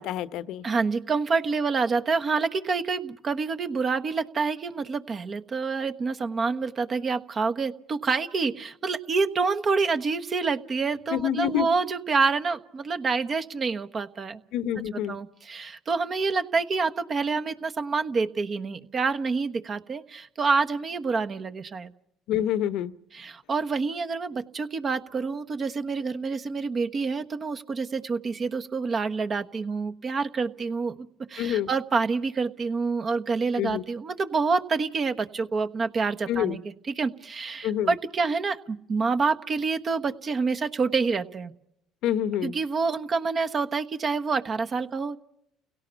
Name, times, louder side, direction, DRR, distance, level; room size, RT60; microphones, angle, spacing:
voice 1, 0.0-0.6 11.1-11.7 14.5-15.2 22.3-22.9 31.4-31.7 33.6-33.8 36.3-36.6 37.6-37.9 42.0-42.5, left 10 dB, 70° left, 15 dB, 0.9 m, -27 dB
voice 2, 0.6-14.4 15.1-21.9 23.1-36.6 36.9-41.5 42.4-45.2, right 4 dB, 40° right, 8 dB, 1.2 m, -27 dB
30.0 x 17.0 x 7.0 m, 0.78 s
supercardioid pair, 80°, 0 cm